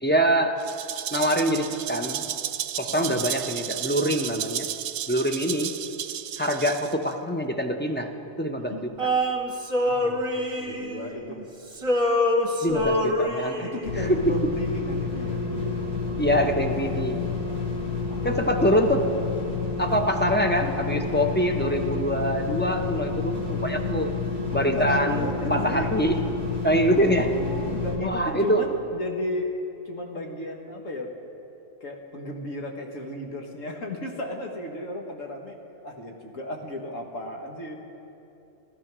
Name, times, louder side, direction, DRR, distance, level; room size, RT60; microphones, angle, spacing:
voice 1, 0.0-0.6 1.1-2.3 2.8-4.7 5.1-5.7 6.4-8.1 8.4-8.9 12.6-13.7 14.0-14.4 16.2-17.3 18.2-19.1 19.8-24.1 24.5-26.2 26.6-27.3 28.0-28.6, equal, 10° left, 4 dB, 0.5 m, -24 dB
Rattle (instrument), 0.6-7.1, right 10 dB, 85° right, 1.0 m, -33 dB
Male singing, 9.0-11.4 11.7-13.9, left 1 dB, 25° right, 1.1 m, -25 dB
voice 2, 9.9-11.4 13.6-15.8 18.1-18.5 18.9-19.8 23.4-24.1 24.5-25.9 26.9-29.5 29.9-31.1 31.8-35.6 35.8-37.8, left 2 dB, 80° left, 1 dB, 1.9 m, -35 dB
sound 1, 13.8-28.0, left 4 dB, 60° left, 2.9 m, -29 dB
15.0 x 12.5 x 6.1 m, 2.8 s
omnidirectional pair, 1.3 m